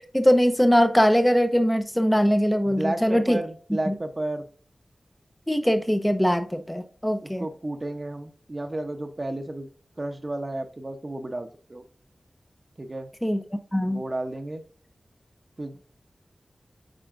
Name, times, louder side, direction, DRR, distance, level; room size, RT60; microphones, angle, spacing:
voice 1, 0.1-3.4 3.9-4.0 5.5-7.5 13.2-13.4 13.7-14.0, equal, 10° left, 0.7 m, -21 dB
voice 2, 2.6-4.5 7.2-9.7 10.0-11.8 12.8-13.1 13.9-14.6 15.6-15.9, right 2 dB, 40° right, 0.8 m, -32 dB
8.8 x 4.2 x 2.5 m
cardioid pair, 40°, 0 cm